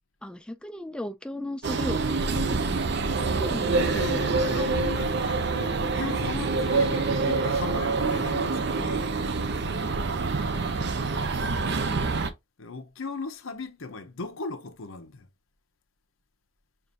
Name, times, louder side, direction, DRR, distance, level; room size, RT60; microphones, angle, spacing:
voice 1, 0.2-3.7 4.1-4.3 11.1-11.3, left 1 dB, 5° left, 0.3 m, -37 dB
sound 1, 1.6-12.3, right 4 dB, 55° right, 0.6 m, -26 dB
voice 2, 3.5-9.1 12.6-15.3, left 3 dB, 85° left, 0.8 m, -37 dB
6.5 x 2.6 x 2.6 m
head